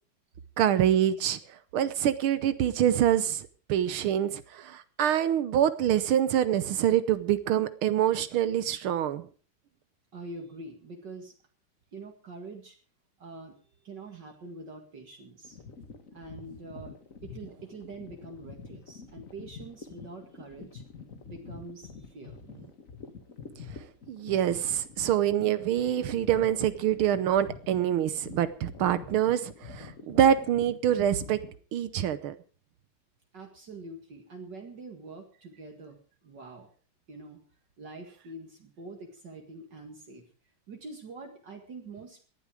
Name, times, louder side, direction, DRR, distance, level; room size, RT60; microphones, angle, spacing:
voice 1, 0.6-1.4 1.7-9.2 24.1-31.4 31.7-32.4, right 10 dB, 75° right, 14 dB, 1.7 m, -25 dB
voice 2, 10.1-11.3 11.9-12.8 13.2-13.6 13.8-15.6 16.1-17.0 17.2-20.8 21.2-22.4 33.3-36.0 36.2-36.7 37.1-37.4 37.8-40.2 40.7-42.2, right 3 dB, 55° right, 3 dB, 2.6 m, -45 dB
sound 1, 15.4-31.6, left 5 dB, 40° left, 1.7 m, -46 dB
17.5 x 12.0 x 4.9 m, 0.41 s
omnidirectional pair, 2.4 m